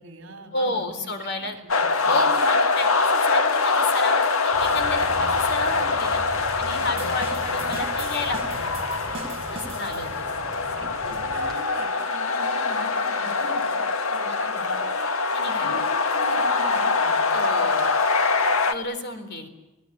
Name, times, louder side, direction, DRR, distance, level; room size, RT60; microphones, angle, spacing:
voice 1, 0.0-1.1 1.6-1.7 2.0-2.3 6.8-7.2 10.8-14.9 15.6-17.2, right 1 dB, 65° right, 7 dB, 5.6 m, -42 dB
voice 2, 0.5-1.6 2.0-6.2 6.6-8.7 9.5-10.1 10.4-10.5 11.0-11.2 15.3-15.7 17.3-17.9 18.7-19.5, left 2 dB, 55° left, 7 dB, 3.8 m, -31 dB
sound 1, 1.7-18.7, left 4 dB, 90° left, 1.8 m, -24 dB
sound 2, 4.5-11.5, equal, 5° left, 4.5 m, -40 dB
sound 3, 7.0-10.4, right 4 dB, 30° right, 5.8 m, -40 dB
30.0 x 18.5 x 9.8 m, 1.0 s
head